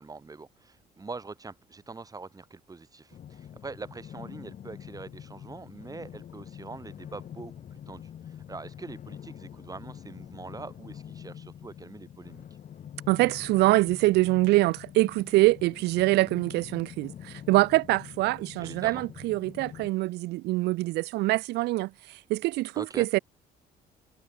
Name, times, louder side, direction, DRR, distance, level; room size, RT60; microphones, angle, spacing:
voice 1, 0.0-12.5 18.6-19.0 22.7-23.1, right 4 dB, 20° right, 4.7 m, -43 dB
sound 1, 3.1-19.9, left 9 dB, 50° left, 2.6 m, -45 dB
voice 2, 13.1-23.2, right 20 dB, 80° right, 0.5 m, -24 dB
cardioid pair, 110°, 17 cm